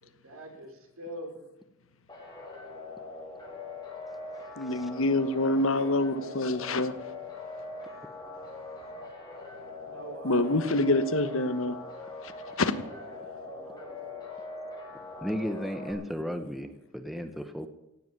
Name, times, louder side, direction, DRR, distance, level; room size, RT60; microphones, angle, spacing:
voice 1, 0.0-1.4 4.6-5.0 5.5-6.6 9.8-10.9 12.8-14.7, right 1 dB, 70° right, 3 dB, 4.1 m, -46 dB
sound 1, 2.1-15.9, left 3 dB, 20° left, 4.3 m, -42 dB
voice 2, 4.6-6.9 10.2-11.8 12.6-12.7, left 2 dB, 65° left, 12 dB, 1.3 m, -26 dB
voice 3, 15.2-17.7, equal, ahead, 8 dB, 0.9 m, -34 dB
17.0 x 8.0 x 9.5 m, 0.91 s
head